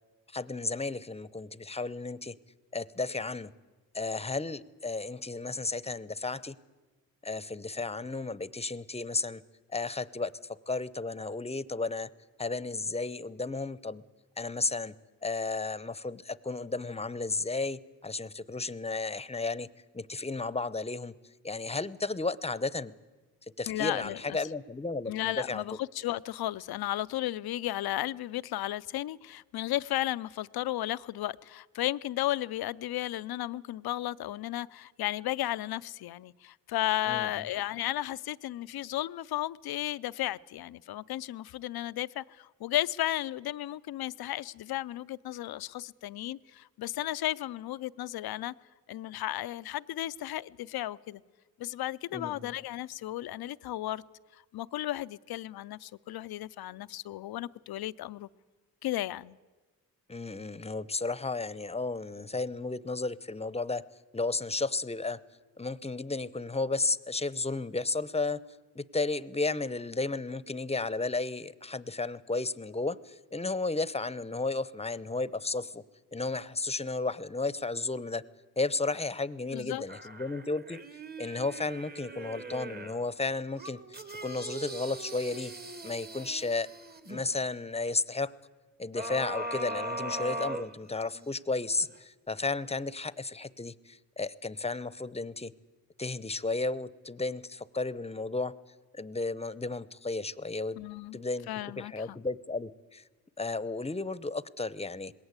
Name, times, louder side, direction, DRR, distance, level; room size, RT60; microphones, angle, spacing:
voice 1, 0.3-2.4 2.7-3.5 3.9-6.6 7.2-9.4 9.7-12.1 12.4-14.0 14.4-14.9 15.2-21.2 21.4-22.9 23.4-25.6 37.1-37.4 52.1-52.5 60.1-63.8 64.1-65.2 65.6-68.4 68.7-75.8 76.1-78.2 78.6-80.8 81.2-83.8 84.2-85.6 85.8-86.7 87.1-88.3 88.8-95.5 96.0-98.6 98.9-100.8 101.1-101.5 101.8-103.0 103.4-105.1, left 3 dB, 15° left, 0.8 m, -33 dB
voice 2, 23.7-24.4 25.1-48.5 48.9-51.2 51.6-54.0 54.3-58.3 58.8-59.4 79.5-79.8 100.8-101.2 101.5-102.2, left 14 dB, 85° left, 0.6 m, -34 dB
sound 1, 79.9-83.0 83.6-87.2 89.0-91.3 91.8-91.9, right 1 dB, 25° right, 1.4 m, -40 dB
20.5 x 17.5 x 8.1 m
cardioid pair, 55°, 36 cm